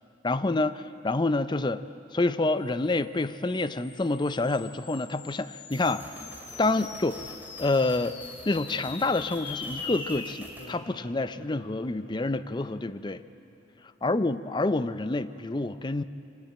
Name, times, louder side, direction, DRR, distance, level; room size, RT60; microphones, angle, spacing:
voice 1, 0.2-1.8 2.1-6.1 6.6-7.2 7.6-8.2 8.5-13.2 14.0-16.0, left 2 dB, 25° left, 13 dB, 0.5 m, -27 dB
sound 1, 3.1-13.8, left 4 dB, 60° left, 2.2 m, -43 dB
sound 2, 5.7-10.7, right 1 dB, 10° right, 2.7 m, -48 dB
24.5 x 17.5 x 9.2 m, 2.9 s
head